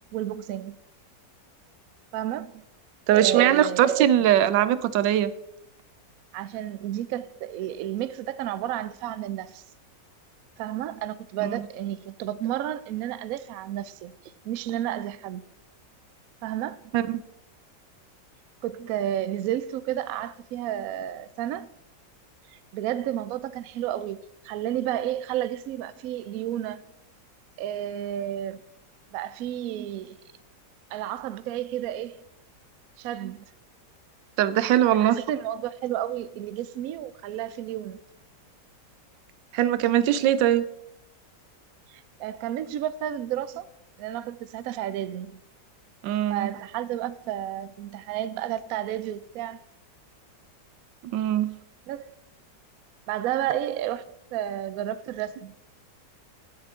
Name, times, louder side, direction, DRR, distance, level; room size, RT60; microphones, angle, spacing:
voice 1, 0.1-0.8 2.1-2.6 3.1-3.8 6.3-9.6 10.6-14.1 14.4-15.4 16.4-16.8 18.6-21.7 22.5-26.8 27.6-28.6 29.1-30.2 30.9-32.1 33.0-33.4 35.0-38.0 41.9-43.7 44.0-45.3 46.3-49.6 51.9-52.2 53.1-54.0 54.3-55.5, right 12 dB, 70° right, 0.9 m, -31 dB
voice 2, 3.1-5.3 11.4-11.6 16.9-17.2 34.4-35.2 39.5-40.6 46.0-46.5 51.0-51.5, right 11 dB, 90° right, 1.3 m, -21 dB
16.5 x 7.3 x 3.6 m
omnidirectional pair, 1.9 m